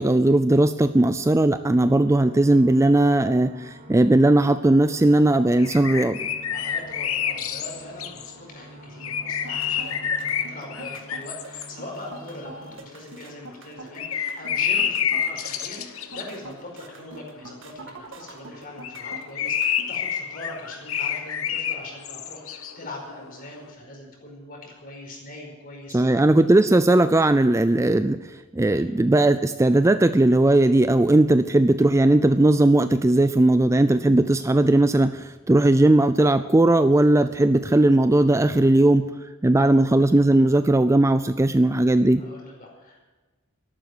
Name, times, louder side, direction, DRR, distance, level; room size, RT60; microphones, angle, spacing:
voice 1, 0.0-6.2 25.9-39.1 39.4-42.2, right 2 dB, 15° right, 11 dB, 0.4 m, -18 dB
sound 1, 1.6-12.7, right 1 dB, 35° right, 1.6 m, -45 dB
sound 2, 5.0-5.1 5.6-8.4 9.0-13.2 13.6-18.4 18.7-23.6, left 8 dB, 65° left, 1.1 m, -29 dB
voice 2, 6.5-26.2 28.6-28.8 39.5-39.8 42.2-43.0, left 1 dB, 40° left, 0 dB, 5.1 m, -41 dB
sound 3, 9.3-19.9, right 2 dB, 60° right, 1.7 m, -43 dB
13.0 x 11.5 x 7.9 m, 1.2 s
head